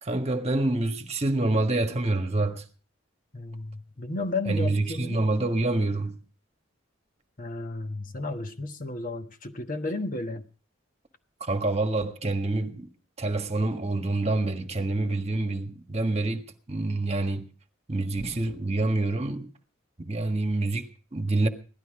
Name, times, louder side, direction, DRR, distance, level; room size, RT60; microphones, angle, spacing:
voice 1, 0.0-2.6 4.4-6.2 11.4-12.9 13.2-16.4 16.7-17.5 17.9-19.5 20.0-21.5, right 2 dB, 30° right, 1.5 m, -27 dB
voice 2, 3.3-5.5 7.4-10.4, left 2 dB, 45° left, 1.3 m, -33 dB
17.5 x 12.5 x 4.8 m
head